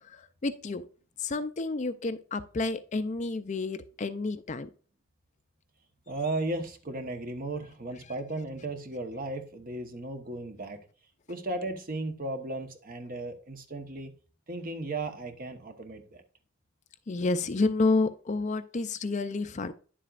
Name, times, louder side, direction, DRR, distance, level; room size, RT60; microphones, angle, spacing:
voice 1, 0.1-0.8 1.2-4.7 17.1-19.7, left 3 dB, 35° left, 0.4 m, -30 dB
voice 2, 6.1-10.8 11.3-14.1 14.5-16.2, right 2 dB, 40° right, 1.0 m, -35 dB
10.0 x 7.4 x 2.5 m
head